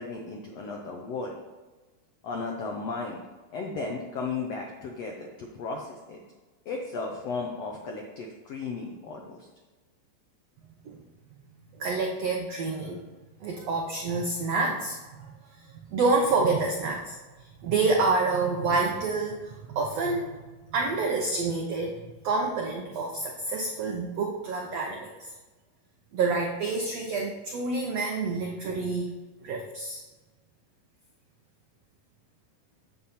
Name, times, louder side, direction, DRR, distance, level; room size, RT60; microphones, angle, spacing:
voice 1, 0.0-1.3 2.2-3.2 3.5-6.2 6.6-9.5, left 4 dB, 80° left, 1 dB, 1.4 m, -35 dB
voice 2, 11.7-13.0 13.4-20.4 20.7-25.3 26.1-29.1 29.4-30.0, right 3 dB, 80° right, 1 dB, 1.4 m, -28 dB
9.2 x 7.7 x 4.2 m, 1.2 s
omnidirectional pair, 4.2 m